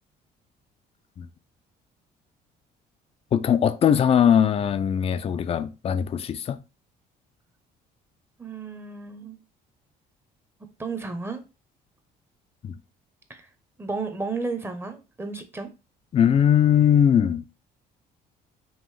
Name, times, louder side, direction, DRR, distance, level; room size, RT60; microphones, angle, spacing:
voice 1, 3.3-6.6 12.6-12.8 16.1-17.4, left 9 dB, 35° left, 0.4 m, -20 dB
voice 2, 8.4-9.4 10.8-11.4 13.3-13.5 13.8-15.7, right 4 dB, 15° right, 0.8 m, -33 dB
5.4 x 2.6 x 3.1 m
cardioid pair, 110°, 17 cm